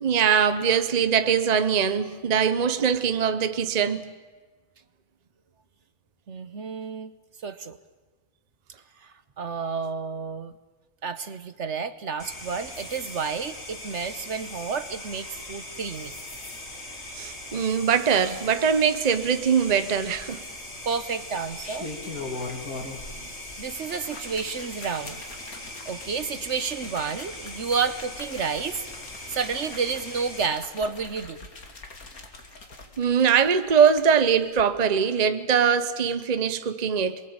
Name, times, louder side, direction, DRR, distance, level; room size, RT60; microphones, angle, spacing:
voice 1, 0.0-4.1 17.1-20.4 33.0-37.2, right 7 dB, 35° right, 0.9 m, -22 dB
voice 2, 6.3-7.1 7.4-7.8 9.0-10.5 11.0-16.2 20.8-21.9 23.6-25.2 25.8-28.9 29.3-31.5, right 5 dB, 55° right, 1.2 m, -30 dB
sound 1, 12.2-30.5, left 1 dB, 65° left, 4.1 m, -40 dB
sound 2, 19.9-20.5 21.4-23.2 23.5-34.1 34.5-34.6, left 3 dB, 90° left, 3.1 m, -42 dB
27.0 x 21.5 x 8.8 m
omnidirectional pair, 1.5 m